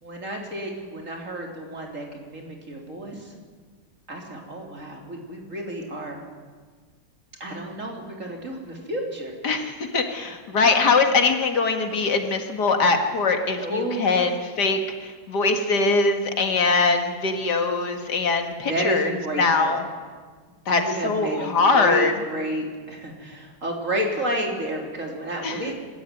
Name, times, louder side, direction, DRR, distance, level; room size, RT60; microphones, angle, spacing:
voice 1, 0.0-3.3 4.1-6.2 7.4-9.5 13.6-14.3 18.5-19.8 20.6-25.7, right 1 dB, 50° right, 1 dB, 4.1 m, -31 dB
voice 2, 9.4-14.3 14.6-19.8 20.7-22.1 25.4-25.6, left 4 dB, 80° left, 5 dB, 2.6 m, -22 dB
25.5 x 13.5 x 9.4 m, 1.5 s
omnidirectional pair, 1.8 m